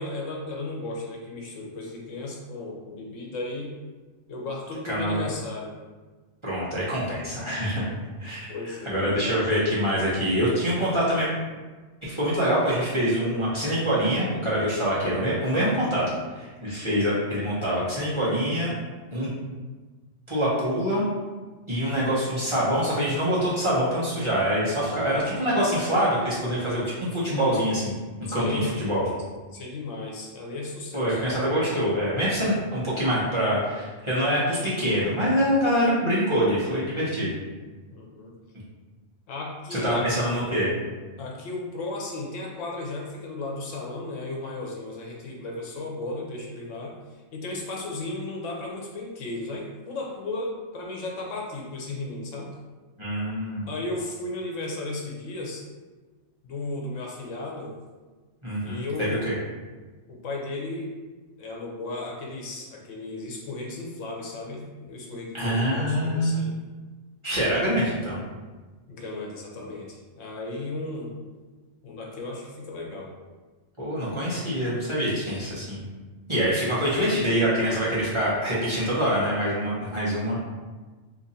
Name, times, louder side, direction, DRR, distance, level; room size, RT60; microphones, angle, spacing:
voice 1, 0.0-3.8 4.3-5.8 8.5-9.1 28.3-28.7 29.5-31.2 37.9-38.3 39.3-40.1 41.2-52.5 53.7-55.6 56.4-57.7 58.6-59.3 60.1-61.0 61.4-66.5 67.5-67.7 68.9-71.1 71.8-73.1, left 2 dB, 80° left, -1 dB, 1.1 m, -35 dB
voice 2, 4.9-5.2 6.4-7.8 8.2-8.5 8.9-11.3 12.0-16.0 16.3-18.7 19.1-19.3 20.3-21.0 21.7-26.8 27.1-27.9 28.3-29.0 30.9-37.4 39.7-40.7 53.0-53.7 58.4-59.3 65.3-66.3 67.2-68.2 73.8-75.8 76.3-80.4, equal, 30° right, -9 dB, 0.8 m, -25 dB
2.8 x 2.5 x 4.0 m, 1.3 s
omnidirectional pair, 1.3 m